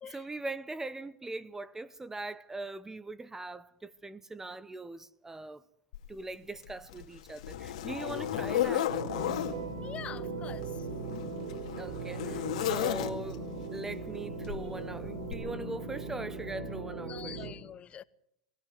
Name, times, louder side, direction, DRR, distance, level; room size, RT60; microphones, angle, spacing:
voice 1, 0.1-5.6 6.1-8.9 11.8-17.5, right 2 dB, 10° right, 0.9 m, -41 dB
Zipper (clothing), 5.9-6.0 6.6-9.6 10.5-13.5 14.5-14.7 15.3-15.4, left 11 dB, 85° left, 2.3 m, -34 dB
organic metalic ambience, 8.9-17.5, right 3 dB, 85° right, 3.8 m, -39 dB
voice 2, 9.8-10.9 17.0-18.0, left 9 dB, 30° left, 0.8 m, -45 dB
21.5 x 16.5 x 7.9 m
supercardioid pair, 110°, 4 cm